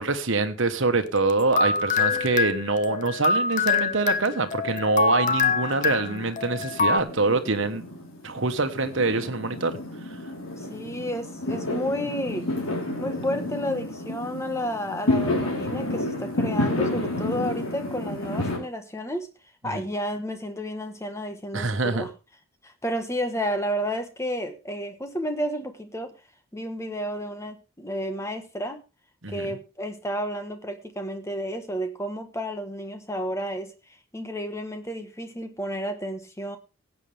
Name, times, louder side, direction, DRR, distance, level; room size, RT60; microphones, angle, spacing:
voice 1, 0.0-7.8 8.2-9.7 19.6-19.8 21.5-22.0 29.2-29.6, right 3 dB, 60° right, 1.4 m, -25 dB
sound 1, 1.2-7.0, left 4 dB, 35° left, 0.7 m, -25 dB
Fireworks, 2.1-3.1 3.3-18.6, left 1 dB, 75° left, 4.0 m, -31 dB
voice 2, 10.6-12.5 13.0-19.3 19.6-22.1 22.6-26.1 26.5-28.8 29.3-33.7 34.1-36.6, equal, 15° left, 1.4 m, -31 dB
17.0 x 8.4 x 3.5 m
head